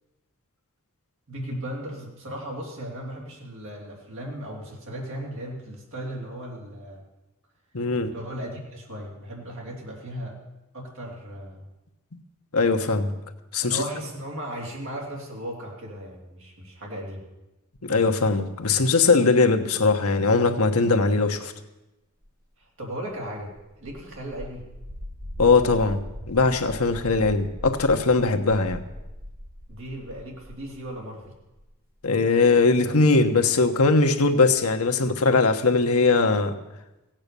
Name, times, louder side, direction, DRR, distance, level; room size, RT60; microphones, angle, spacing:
voice 1, 1.3-7.0 8.0-10.4 10.7-11.6 13.6-17.2 22.6-23.5 23.8-24.6 29.7-31.3, right 1 dB, 60° right, -1 dB, 3.2 m, -36 dB
voice 2, 7.7-8.1 12.5-13.1 13.5-13.8 17.8-21.5 25.4-26.0 26.3-28.8 32.0-36.5, left 3 dB, 80° left, 6 dB, 1.1 m, -20 dB
sound 1, 22.2-22.3 23.3-31.7 32.1-32.8 34.7-34.8, equal, 40° right, 1.6 m, -40 dB
16.0 x 8.9 x 6.8 m, 1.0 s
head